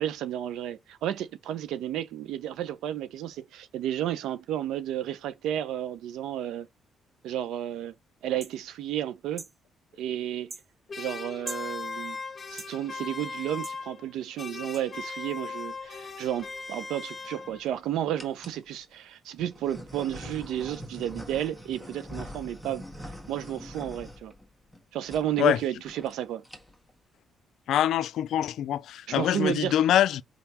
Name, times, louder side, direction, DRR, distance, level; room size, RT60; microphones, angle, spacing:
voice 1, 0.0-6.7 7.2-7.9 8.2-9.4 10.0-10.5 11.0-12.2 12.5-22.9 23.3-24.3 24.9-26.4 29.1-29.7, right 11 dB, 85° right, 0.7 m, -32 dB
sound 1, 8.4-8.6 9.4-9.6 10.5-10.7 11.5-11.7 12.6-12.7 13.6-13.8 14.7-14.8, right 3 dB, 25° right, 0.4 m, -40 dB
sound 2, 10.9-14.1 14.4-17.8, left 4 dB, 35° left, 1.4 m, -39 dB
sound 3, 16.1-16.5 17.2-17.7 18.2-18.6 19.4-24.8 25.1-25.3 25.6-25.7 25.9-26.1 26.4-26.9, equal, 5° right, 1.6 m, -43 dB
voice 2, 27.7-30.2, left 11 dB, 75° left, 0.4 m, -24 dB
5.3 x 3.5 x 2.9 m
cardioid pair, 90°, 0 cm